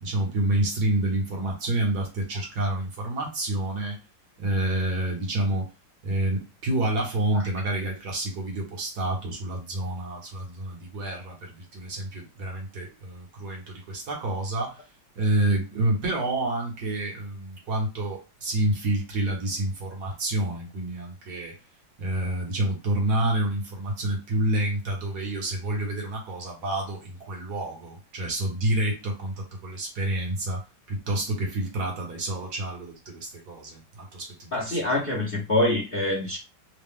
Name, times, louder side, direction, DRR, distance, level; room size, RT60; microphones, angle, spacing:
voice 1, 0.0-4.0 4.4-5.7 6.0-14.8 15.2-21.5 22.0-34.8, right 1 dB, 60° right, 1.7 m, -28 dB
voice 2, 34.5-36.4, left 1 dB, 35° left, 1.0 m, -25 dB
3.8 x 2.4 x 3.6 m
omnidirectional pair, 2.0 m